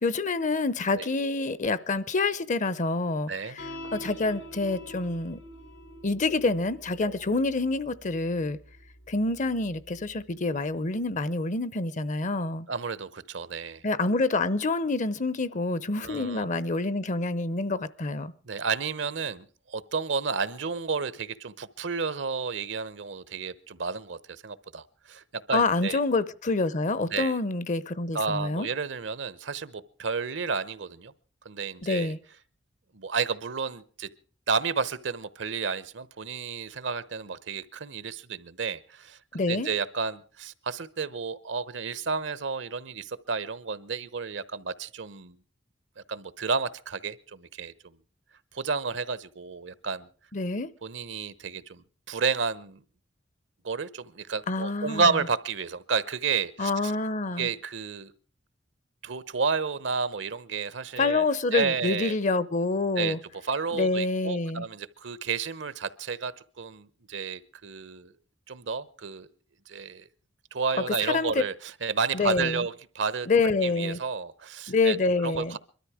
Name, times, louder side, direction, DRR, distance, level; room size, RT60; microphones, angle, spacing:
voice 1, 0.0-3.3 3.6-5.4 6.0-8.6 9.1-12.7 13.8-18.3 25.5-28.7 31.8-32.2 39.3-39.7 50.3-50.7 54.5-55.1 56.6-57.5 61.0-63.2 63.7-64.7 70.9-71.4 72.1-72.6 73.3-74.0 74.7-75.6, left 3 dB, 40° left, 0.7 m, -27 dB
sound 1, 3.6-10.2, equal, 85° left, 6.5 m, -46 dB
voice 2, 12.7-13.8 16.0-16.4 18.5-26.0 27.1-27.4 28.1-31.1 31.4-32.1 32.9-34.1 34.5-39.2 39.5-45.4 46.1-47.9 48.5-50.1 50.8-52.8 53.6-56.9 57.4-58.1 59.0-61.2 61.5-62.1 63.0-63.2 63.4-66.3 66.6-68.1 68.5-69.3 69.7-70.1 70.5-73.3 73.6-75.0 75.2-75.6, right 5 dB, 70° right, 0.9 m, -31 dB
22.5 x 13.0 x 4.9 m
head